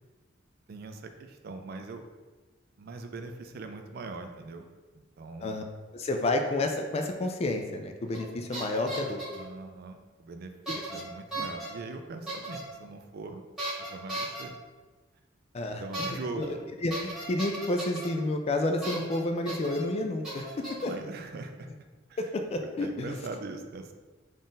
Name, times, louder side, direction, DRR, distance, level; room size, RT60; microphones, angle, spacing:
voice 1, 0.7-2.0 2.8-4.7 4.9-5.5 9.3-13.4 13.8-14.6 15.8-16.6 20.8-21.7 22.1-22.2 22.6-23.9, right 3 dB, 50° right, 6 dB, 0.4 m, -41 dB
voice 2, 5.9-9.2 10.9-11.0 11.4-11.5 15.5-16.5 16.8-20.9 22.2-23.1, left 2 dB, 30° left, 5 dB, 0.3 m, -30 dB
sound 1, 8.1-8.3 8.5-9.4 10.7-11.0 11.3-11.7 12.3-12.6 13.6-14.4 15.9-16.1 16.4-16.5 16.9-18.1 18.8-19.2 19.5-19.8 20.2-20.9, right 1 dB, ahead, 1.2 m, -36 dB
3.7 x 2.5 x 3.9 m, 1.3 s
head